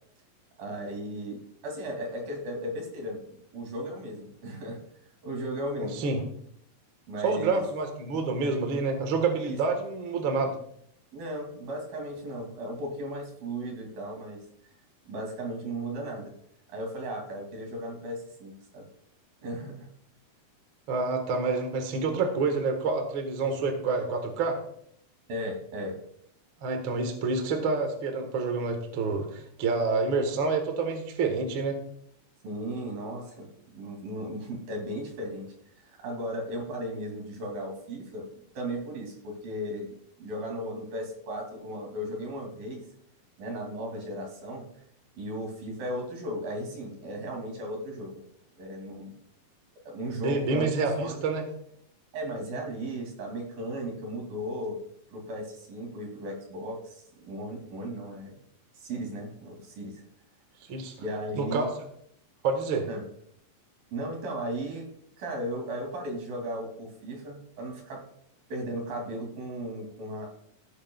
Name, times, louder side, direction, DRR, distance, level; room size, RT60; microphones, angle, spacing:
voice 1, 0.6-4.8 5.2-6.0 7.1-7.6 9.5-9.6 11.1-14.4 15.1-16.3 16.7-18.8 19.4-19.9 25.3-25.9 32.4-35.5 35.8-38.3 38.5-42.8 43.4-44.7 45.2-48.2 48.6-49.2 49.9-50.7 51.0-51.2 52.1-54.8 55.1-58.3 58.7-60.0 61.0-61.7 62.9-63.0 63.9-64.9 65.2-68.0 68.5-70.3, right 1 dB, 75° right, 1 dB, 4.5 m, -36 dB
voice 2, 5.8-6.2 7.2-10.5 20.9-24.6 26.6-31.8 50.2-51.4 60.7-60.9 61.4-61.7 62.4-62.9, right 4 dB, 50° right, 5 dB, 1.7 m, -28 dB
16.5 x 9.4 x 2.4 m, 0.68 s
omnidirectional pair, 4.1 m